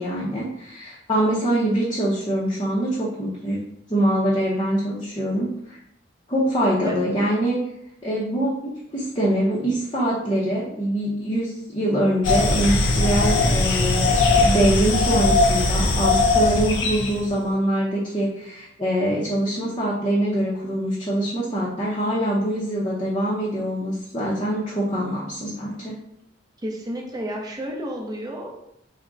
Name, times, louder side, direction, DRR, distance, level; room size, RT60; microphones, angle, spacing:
voice 1, 0.0-3.6 3.9-5.8 6.3-7.6 8.0-25.9, right 1 dB, 25° left, -7 dB, 0.6 m, -24 dB
sound 1, 12.2-17.2, left 3 dB, 80° left, 0.5 m, -20 dB
voice 2, 26.6-28.5, equal, 20° right, -1 dB, 0.6 m, -31 dB
3.5 x 2.1 x 3.8 m, 0.77 s
head